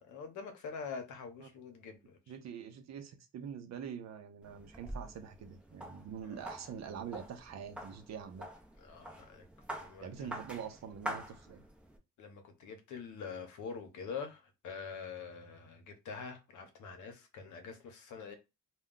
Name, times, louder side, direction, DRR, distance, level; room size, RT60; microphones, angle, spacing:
voice 1, 0.0-2.2 6.2-6.5 8.8-9.4 9.8-10.3 12.2-18.4, left 5 dB, 75° left, 0.8 m, -45 dB
voice 2, 2.3-8.5 10.0-11.6, right 8 dB, 60° right, 0.6 m, -45 dB
sound 1, 4.4-12.0, right 1 dB, 5° right, 0.6 m, -46 dB
2.2 x 2.2 x 3.7 m
cardioid pair, 90°, 30 cm